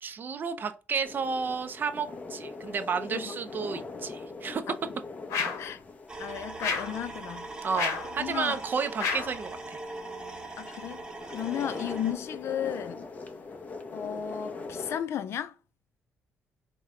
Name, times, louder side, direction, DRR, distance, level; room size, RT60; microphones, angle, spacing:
voice 1, 0.0-4.6 7.6-9.8, right 5 dB, 40° right, 0.4 m, -32 dB
sound 1, 1.0-15.0, left 3 dB, 30° left, 0.7 m, -43 dB
sound 2, 5.3-5.7 6.6-7.0 7.7-8.1 9.0-9.4, left 6 dB, 85° left, 0.9 m, -30 dB
sound 3, 6.1-12.1, right 2 dB, 15° right, 0.8 m, -41 dB
voice 2, 6.2-7.5 8.2-8.6 10.6-13.0 13.9-15.5, left 9 dB, 60° left, 0.4 m, -34 dB
4.8 x 2.1 x 3.6 m
cardioid pair, 120°, 5 cm